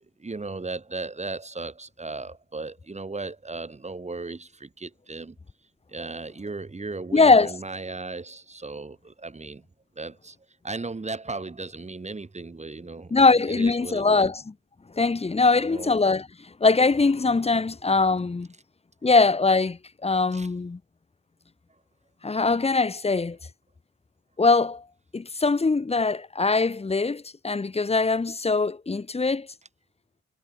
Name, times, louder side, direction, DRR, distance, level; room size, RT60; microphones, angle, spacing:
voice 1, 0.0-5.4 5.9-9.6 10.0-10.4 10.6-14.3 15.6-16.0 20.3-20.5, right 3 dB, 20° right, 6.1 m, -36 dB
voice 2, 7.1-7.5 13.1-14.4 14.9-16.3 16.6-18.5 19.0-20.8 22.2-23.4 24.4-24.8 25.1-29.5, left 3 dB, 20° left, 1.3 m, -22 dB
cardioid pair, 90°, 30 cm